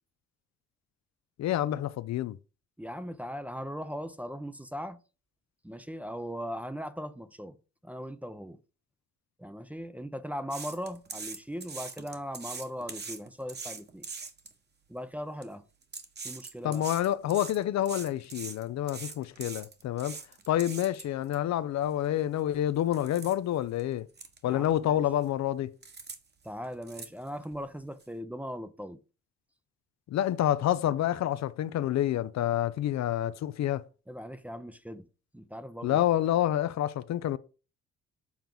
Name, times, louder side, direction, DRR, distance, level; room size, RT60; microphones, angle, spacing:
voice 1, 1.4-2.4 16.6-20.2 20.5-24.1 24.4-25.7 30.1-33.8 35.8-37.4, left 12 dB, 65° left, 0.5 m, -28 dB
voice 2, 2.8-5.0 5.6-7.6 7.8-8.6 9.4-14.1 14.9-15.6 16.2-16.9 24.5-25.0 26.4-29.0 34.1-35.1 35.3-36.0, equal, 5° right, 0.6 m, -39 dB
sound 1, 10.5-14.5 15.2-15.4 15.8-21.3 21.8-21.9 22.4-22.5 22.9-23.3 23.8-23.9 24.1-24.4 24.7-25.2 25.8-26.2 26.4-27.6 28.0-28.1, right 4 dB, 35° right, 1.3 m, -42 dB
7.2 x 4.5 x 3.8 m
cardioid pair, 90°, 30 cm